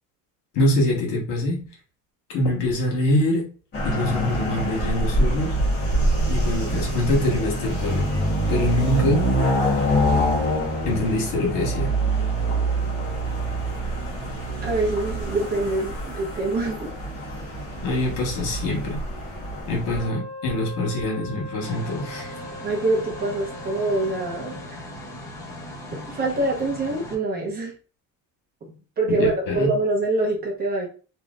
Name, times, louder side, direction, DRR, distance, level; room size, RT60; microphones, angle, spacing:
voice 1, 0.5-1.6 2.3-3.5 3.8-5.6 6.3-8.1 8.5-9.3 10.8-11.9 17.8-19.0 19.7-22.3 29.1-29.7, left 1 dB, 70° left, 1.6 m, -24 dB
sound 1, 3.7-20.1, right 1 dB, 30° left, 1.1 m, -25 dB
voice 2, 14.6-16.9 22.6-24.8 25.9-27.7 28.6-30.9, right 2 dB, 25° right, 0.7 m, -25 dB
Wind instrument woodwind instrument, 19.9-24.7, left 1 dB, 45° left, 1.4 m, -39 dB
sound 2, 21.6-27.2, left 1 dB, 10° left, 0.7 m, -38 dB
3.2 x 2.6 x 2.5 m
cardioid pair, 175°, 35 cm